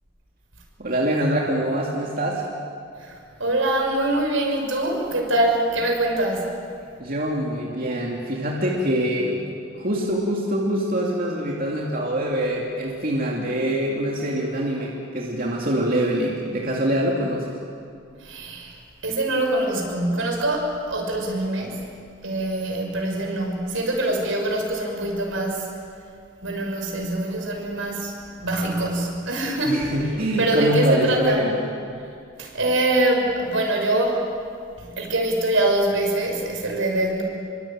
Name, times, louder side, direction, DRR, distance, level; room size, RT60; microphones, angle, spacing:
voice 1, 0.8-2.4 7.0-9.4 9.7-17.6 29.6-31.7, equal, 45° right, -2 dB, 2.8 m, -24 dB
voice 2, 3.0-6.5 18.2-18.8 19.0-21.8 22.2-25.7 26.4-28.1 28.4-29.8 30.4-31.5 32.4-34.3 34.8-37.2, right 1 dB, 80° right, 1 dB, 6.1 m, -24 dB
26.5 x 24.0 x 9.0 m, 2.4 s
head